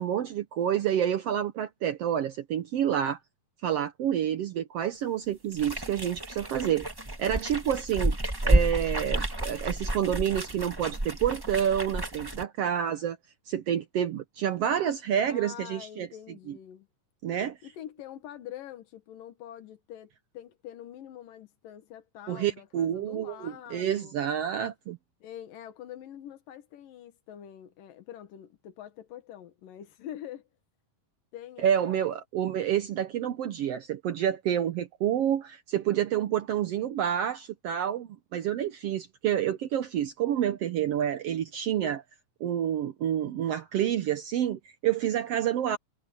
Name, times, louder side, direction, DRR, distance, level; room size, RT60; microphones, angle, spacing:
voice 1, 0.0-3.2 3.6-6.9 7.2-8.2 8.4-13.2 13.5-16.1 16.5-16.6 17.2-17.6 22.3-25.0 31.6-42.0 42.4-45.8, right 10 dB, 75° right, 1.4 m, -28 dB
sound 1, 5.5-12.4, right 1 dB, 20° right, 0.6 m, -30 dB
voice 2, 15.3-16.9 17.6-24.2 25.2-30.5 31.3-32.0, left 11 dB, 90° left, 3.2 m, -45 dB
omnidirectional pair, 3.8 m